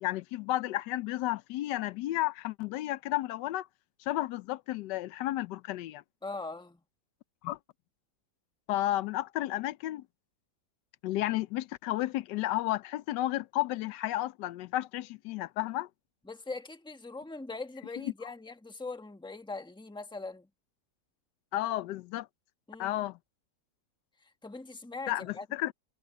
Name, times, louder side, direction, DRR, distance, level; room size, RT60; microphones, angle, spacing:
voice 1, 0.0-3.7 4.1-6.0 7.4-7.6 8.7-10.1 11.0-15.9 18.0-18.1 21.5-22.3 22.8-23.2 25.1-25.7, left 15 dB, 85° left, 1.2 m, -32 dB
voice 2, 6.2-6.8 16.2-20.5 22.7-23.0 24.2-25.5, left 3 dB, 5° left, 1.1 m, -41 dB
omnidirectional pair, 1.8 m